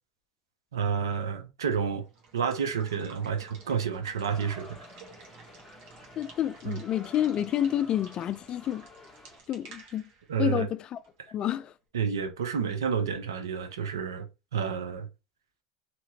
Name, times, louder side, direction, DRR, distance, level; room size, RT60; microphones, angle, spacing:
voice 1, 0.7-2.0 2.3-4.7 6.7-6.8 10.3-10.7 11.9-14.3 14.5-15.1, right 6 dB, 85° right, 0.7 m, -29 dB
Water / Water tap faucet / Liquid, 2.0-11.7, right 4 dB, 55° right, 1.2 m, -52 dB
sound 1, 4.2-9.4, left 1 dB, ahead, 1.4 m, -51 dB
voice 2, 6.2-8.9 9.5-10.1 10.4-11.0 11.3-11.7, left 11 dB, 40° left, 0.3 m, -29 dB
2.9 x 2.8 x 2.8 m
hypercardioid pair, 90°, 2 cm